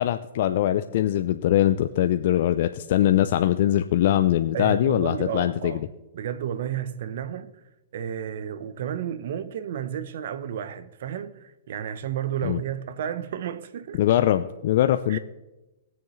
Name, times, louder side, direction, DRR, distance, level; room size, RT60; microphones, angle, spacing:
voice 1, 0.0-5.8 12.4-12.6 14.0-15.2, left 12 dB, 55° left, 0.4 m, -22 dB
voice 2, 4.5-5.9 6.1-7.6 7.9-14.1 15.1-15.2, right 9 dB, 65° right, 0.8 m, -32 dB
19.5 x 7.1 x 3.2 m
hypercardioid pair, 145°, 0 cm